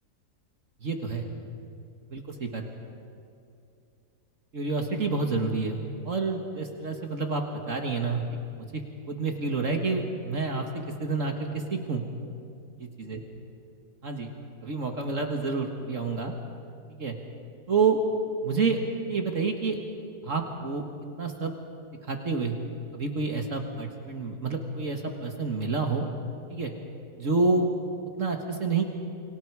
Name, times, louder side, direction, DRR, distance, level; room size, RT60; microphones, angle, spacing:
voice 1, 0.8-1.3 2.1-2.6 4.5-5.8 6.0-8.2 8.6-8.8 9.1-10.7 11.0-12.0 13.0-13.2 14.0-14.3 14.6-16.3 16.9-17.2 17.7-18.0 18.4-18.8 19.1-19.8 20.2-20.8 21.2-21.5 22.1-22.6 22.9-26.1 26.5-26.7 27.2-27.7 28.2-28.8, right 4 dB, 50° right, 3 dB, 1.9 m, -28 dB
29.0 x 24.0 x 4.7 m, 2.6 s
omnidirectional pair, 1.7 m